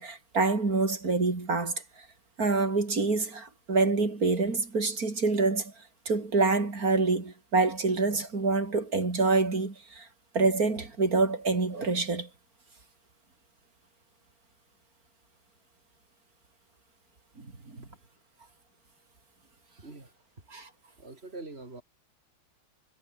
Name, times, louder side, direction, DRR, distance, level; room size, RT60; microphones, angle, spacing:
voice 1, 0.0-1.8 2.4-5.7 6.1-10.1 10.3-12.3 17.4-17.5 17.7-17.8 20.5-20.7, right 3 dB, 45° right, 4.6 m, -26 dB
voice 2, 19.8-20.1 21.0-21.8, right 2 dB, 30° right, 4.2 m, -43 dB
omnidirectional pair, 2.2 m